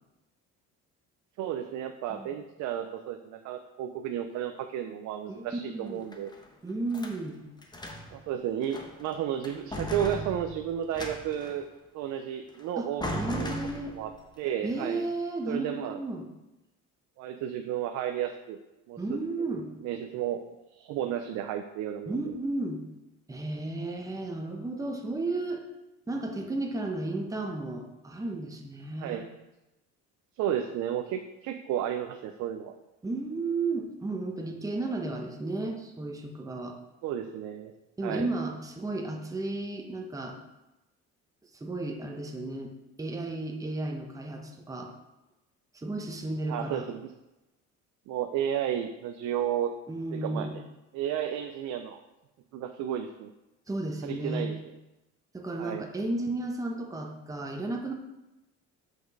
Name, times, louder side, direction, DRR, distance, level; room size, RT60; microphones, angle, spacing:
voice 1, 1.4-6.3 8.1-11.6 11.9-13.5 13.9-14.1 14.4-15.1 15.5-16.0 17.2-18.6 18.9-19.2 19.8-20.4 20.7-22.2 29.0-29.3 30.4-32.7 37.0-37.7 38.0-38.3 46.5-47.1 48.1-49.7 50.1-50.6 50.9-52.0 52.5-53.3 54.0-54.5 55.6-55.8, right 10 dB, 70° right, 6 dB, 0.6 m, -33 dB
voice 2, 5.3-6.1 6.6-7.4 12.8-12.9 13.2-14.0 14.6-16.3 19.0-19.7 22.1-22.8 23.3-25.7 26.1-29.2 33.0-36.8 38.0-40.4 41.5-44.9 45.7-46.8 49.9-50.6 53.7-54.5 55.3-57.9, right 2 dB, 10° right, 2 dB, 1.0 m, -33 dB
sound 1, 5.9-7.2 7.6-8.2 8.6-9.1 9.4-11.6 12.5-12.6 13.0-14.2, equal, 15° left, 1.1 m, -37 dB
6.1 x 5.2 x 4.7 m, 0.98 s
cardioid pair, 110°, 30 cm